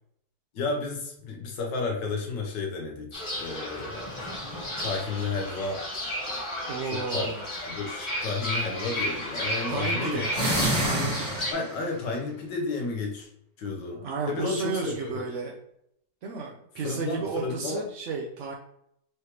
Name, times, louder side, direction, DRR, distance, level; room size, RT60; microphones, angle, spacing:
voice 1, 0.5-4.2 4.8-5.8 6.9-10.3 11.5-13.3 13.6-15.3 16.8-17.8, left 3 dB, 85° left, 1 dB, 1.7 m, -32 dB
Fowl / Bird, 3.1-11.5, equal, 20° left, 1.0 m, -33 dB
voice 2, 6.7-7.4 9.7-10.3 10.8-11.4 13.9-15.5 16.2-18.5, right 4 dB, 65° right, -1 dB, 0.7 m, -33 dB
sound 1, 10.2-11.9, equal, 30° right, 1.9 m, -27 dB
4.7 x 3.2 x 2.9 m, 0.74 s
omnidirectional pair, 1.9 m